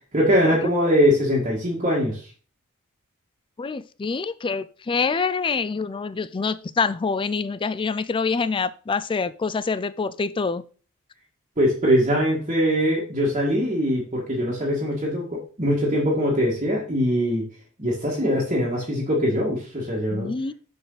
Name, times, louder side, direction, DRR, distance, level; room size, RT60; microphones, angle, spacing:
voice 1, 0.1-2.3 11.6-17.4 17.8-20.3, equal, 30° right, -6 dB, 2.0 m, -22 dB
voice 2, 3.6-10.6 20.1-20.5, left 4 dB, 20° left, 15 dB, 0.3 m, -26 dB
6.6 x 6.6 x 4.0 m, 0.39 s
head